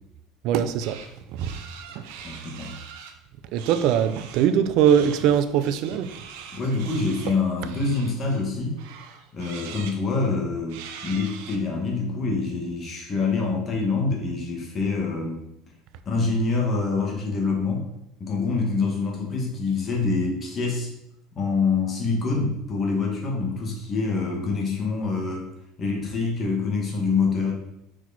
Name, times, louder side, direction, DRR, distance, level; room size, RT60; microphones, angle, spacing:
voice 1, 0.4-1.0 1.3-1.6 1.9-2.1 3.5-6.1, right 9 dB, 55° right, 0.5 m, -21 dB
sound 1, 0.8-1.1 1.4-3.1 3.6-4.5 4.8-8.5 8.8-10.0 10.7-11.6, right 7 dB, 80° right, 0.8 m, -42 dB
voice 2, 2.2-2.7 6.5-8.8 9.3-15.4 16.0-17.9 18.2-20.9 21.3-25.5 25.8-27.5, left 4 dB, 25° left, 1.6 m, -26 dB
6.1 x 4.7 x 4.1 m
cardioid pair, 155°, 0 cm